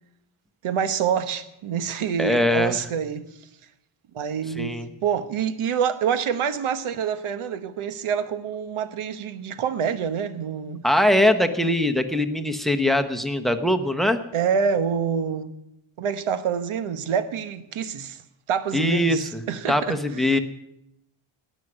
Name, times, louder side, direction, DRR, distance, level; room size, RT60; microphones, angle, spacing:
voice 1, 0.6-3.2 4.1-4.8 5.0-10.8 14.3-15.5 16.0-18.2 18.5-20.0, right 7 dB, 80° right, 1.2 m, -26 dB
voice 2, 2.2-2.8 4.6-4.9 10.8-14.2 18.7-19.4 19.7-20.4, left 1 dB, ahead, 0.9 m, -22 dB
18.5 x 6.3 x 9.6 m
wide cardioid pair, 145°, 49 cm